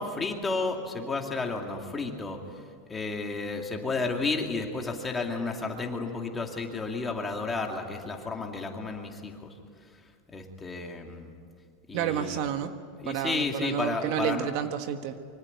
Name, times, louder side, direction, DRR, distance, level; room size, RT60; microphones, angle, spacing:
voice 1, 0.0-2.4 2.9-9.5 10.3-11.3 11.9-12.4 13.0-14.5, left 3 dB, 10° left, 2 dB, 2.5 m, -32 dB
voice 2, 11.9-12.7 13.1-15.2, right 9 dB, 50° right, 8 dB, 1.4 m, -30 dB
25.0 x 24.5 x 9.5 m, 2.1 s
supercardioid pair, 165°, 0 cm